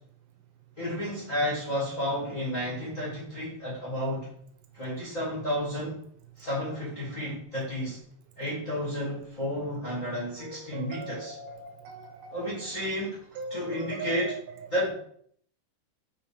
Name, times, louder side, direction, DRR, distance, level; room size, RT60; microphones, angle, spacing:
voice 1, 0.8-4.3 4.7-6.0 6.4-8.0 8.4-11.4 12.3-13.2 13.5-14.3 14.7-14.9, equal, 25° left, -5 dB, 2.1 m, -31 dB
voice 2, 10.4-12.5 13.4-14.9, right 4 dB, 70° right, 6 dB, 2.1 m, -40 dB
6.3 x 5.6 x 5.2 m, 0.65 s
omnidirectional pair, 5.0 m